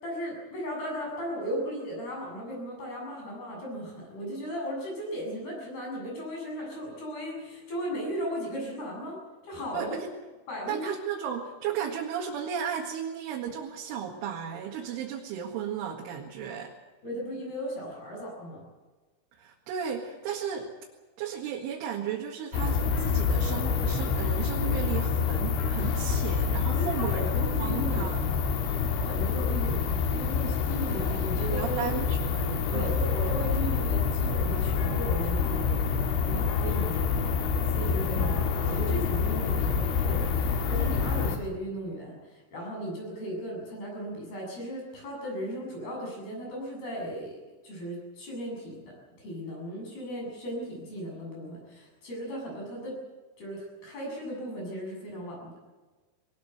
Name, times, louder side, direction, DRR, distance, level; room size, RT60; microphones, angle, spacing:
voice 1, 0.0-10.0 10.5-10.9 11.8-11.9 17.0-18.7 26.7-28.5 29.0-31.9 32.7-35.8 36.2-47.4 47.6-53.0 53.4-55.5, equal, 55° left, -1 dB, 9.4 m, -36 dB
voice 2, 9.7-10.1 10.7-16.7 19.4-20.7 21.2-28.3 31.6-33.0, right 8 dB, 90° right, -1 dB, 4.4 m, -34 dB
sound 1, 22.5-41.4, left 5 dB, 80° left, 4.5 m, -27 dB
21.0 x 20.0 x 8.0 m, 1.2 s
omnidirectional pair, 5.4 m